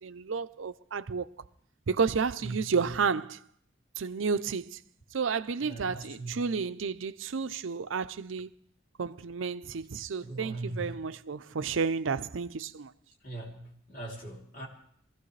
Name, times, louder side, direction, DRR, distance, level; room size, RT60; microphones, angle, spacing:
voice 1, 0.0-1.3 1.9-3.4 4.0-4.8 5.1-8.5 9.0-12.9, right 5 dB, 85° right, 0.6 m, -31 dB
voice 2, 2.4-3.0 5.6-6.4 10.2-11.0 13.2-14.7, right 2 dB, 45° left, 3.1 m, -40 dB
23.0 x 15.5 x 3.2 m
head